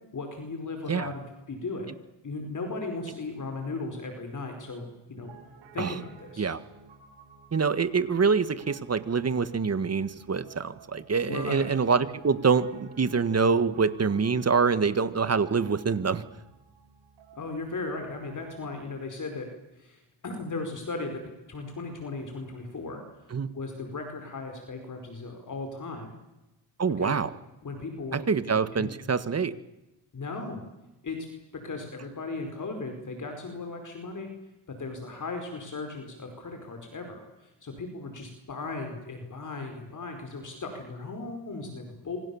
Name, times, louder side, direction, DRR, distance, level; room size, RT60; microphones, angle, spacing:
voice 1, 0.1-1.2 1.5-1.9 2.2-5.3 5.7-6.5 11.3-11.6 17.3-23.0 23.5-26.1 27.0-27.2 27.6-28.9 30.1-30.6 31.0-31.3 31.6-34.3 34.8-42.2, left 3 dB, 40° left, 4 dB, 5.1 m, -37 dB
Piano, 5.2-18.9, right 5 dB, 75° right, 6.6 m, -54 dB
voice 2, 7.5-16.2 23.3-23.5 26.8-27.3 28.1-29.5, right 5 dB, 35° right, 13 dB, 1.7 m, -25 dB
27.0 x 25.0 x 7.3 m, 0.98 s
cardioid pair, 105°, 45 cm